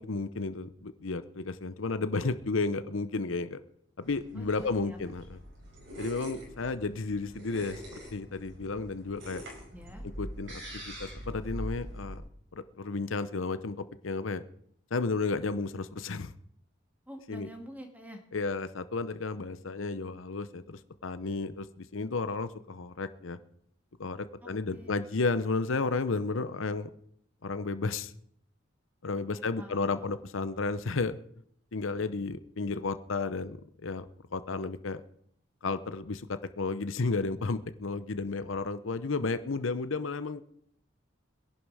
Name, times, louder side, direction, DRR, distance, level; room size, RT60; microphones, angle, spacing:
voice 1, 0.0-3.6 4.0-5.4 6.0-9.4 10.2-12.2 12.8-14.4 14.9-16.3 17.3-17.5 18.3-23.4 24.0-26.9 27.4-28.1 29.0-31.2 31.7-34.0 34.3-35.0 35.6-40.4, left 3 dB, 90° left, 12 dB, 0.8 m, -32 dB
sound 1, 4.0-12.2, equal, 70° right, 5.6 m, -43 dB
voice 2, 4.3-5.0 9.7-10.0 17.1-18.2 24.4-25.2 29.0-30.3, equal, 10° right, 3 dB, 2.0 m, -48 dB
21.5 x 11.0 x 4.9 m, 0.69 s
head